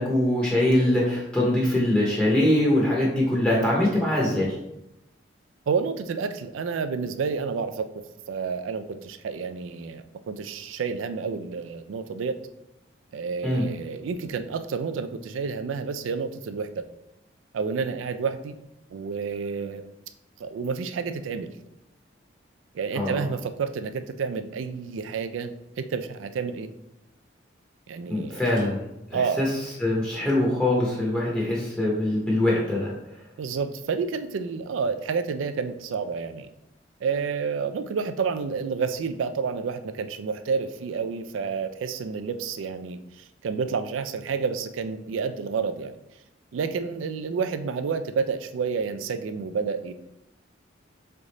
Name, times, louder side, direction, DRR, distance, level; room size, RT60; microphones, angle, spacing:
voice 1, 0.0-4.5 13.4-13.6 22.9-23.2 28.1-28.8 29.1-29.5 29.8-32.9, left 1 dB, 5° left, -5 dB, 0.8 m, -23 dB
voice 2, 5.7-7.9 8.3-12.4 13.1-16.8 17.5-18.5 18.9-19.8 20.4-21.5 22.7-26.7 27.9-28.5 29.1-29.5 33.4-36.5 37.0-46.0 46.5-49.9, right 5 dB, 85° right, 10 dB, 0.4 m, -29 dB
3.7 x 3.4 x 4.0 m, 0.88 s
head